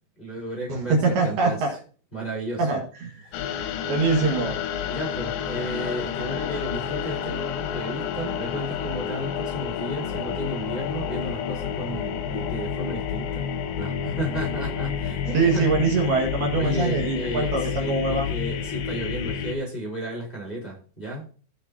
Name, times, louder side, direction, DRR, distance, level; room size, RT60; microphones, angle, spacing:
voice 1, 0.2-1.8 2.1-2.8 3.2-3.4 4.1-4.3 4.9-13.4 13.8-15.7 16.5-21.3, right 1 dB, 15° left, -3 dB, 3.9 m, -33 dB
voice 2, 1.2-1.7 2.6-3.1 3.5-4.5 15.3-18.3, right 4 dB, 65° right, 0 dB, 3.5 m, -24 dB
sound 1, 3.3-19.5, left 8 dB, 85° left, 3.3 m, -30 dB
16.5 x 6.5 x 2.8 m, 0.41 s
omnidirectional pair, 4.9 m